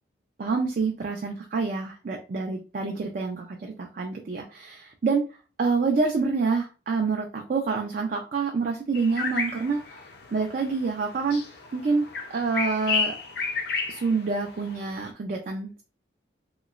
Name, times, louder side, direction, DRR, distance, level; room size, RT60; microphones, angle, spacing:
voice 1, 0.4-5.2 5.6-10.0 10.3-11.4 11.7-12.0 12.3-13.2 13.9-15.8, right 4 dB, 45° right, 2 dB, 0.4 m, -27 dB
sound 1, 8.9-15.1, left 5 dB, 55° left, 0.5 m, -32 dB
2.9 x 2.9 x 2.4 m, 0.34 s
head